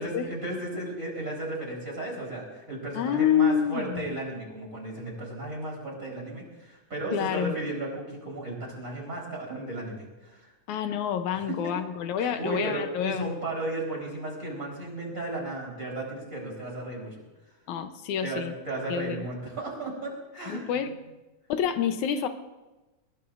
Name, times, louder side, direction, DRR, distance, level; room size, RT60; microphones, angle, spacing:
voice 1, 0.0-10.5 11.3-11.7 12.2-17.2 18.2-20.8, right 2 dB, 25° right, -3 dB, 4.4 m, -35 dB
voice 2, 2.9-4.2 7.1-7.5 10.7-13.3 17.7-18.5 18.9-19.3 20.5-21.0 21.5-22.3, left 8 dB, 80° left, 8 dB, 2.2 m, -28 dB
21.0 x 20.5 x 2.6 m, 1.1 s
omnidirectional pair, 3.4 m